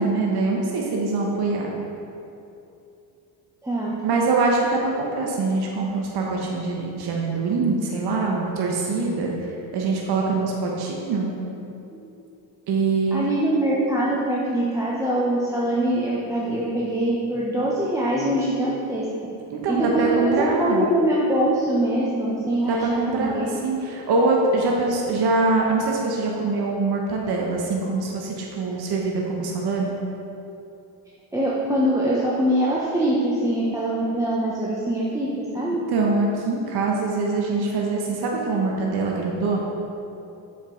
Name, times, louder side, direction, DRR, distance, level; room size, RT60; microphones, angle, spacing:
voice 1, 0.0-1.7 4.0-11.3 12.7-13.3 19.5-20.9 22.7-30.0 35.9-39.6, right 3 dB, 55° right, -1 dB, 1.1 m, -23 dB
voice 2, 3.6-4.0 13.1-19.1 19.7-23.4 31.3-35.8, right 1 dB, 5° right, -6 dB, 0.9 m, -23 dB
7.0 x 5.2 x 3.8 m, 2.8 s
supercardioid pair, 85°, 46 cm